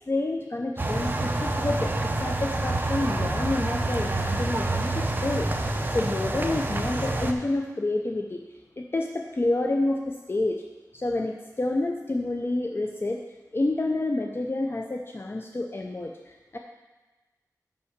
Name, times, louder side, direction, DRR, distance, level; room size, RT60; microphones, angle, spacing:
voice 1, 0.0-5.5 5.9-8.4 8.8-10.6 10.9-13.2 13.5-16.6, left 2 dB, 35° left, 2 dB, 0.5 m, -29 dB
sound 1, 0.8-7.3, right 2 dB, 30° right, 0.7 m, -27 dB
5.6 x 5.6 x 6.5 m, 1.2 s
wide cardioid pair, 65°, 6 cm